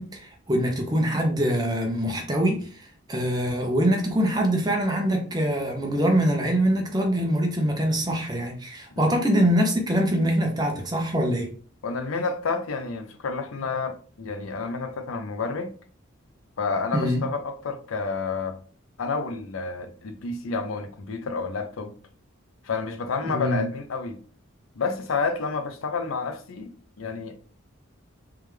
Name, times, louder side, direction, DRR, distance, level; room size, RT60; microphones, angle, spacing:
voice 1, 0.0-11.5 16.9-17.2 23.3-23.7, equal, 20° right, 0.8 m, -24 dB
voice 2, 11.8-15.7 16.6-18.6 19.0-21.9 22.6-24.2 24.8-27.4, left 4 dB, 85° left, 0.6 m, -30 dB
3.4 x 3.3 x 3.2 m
head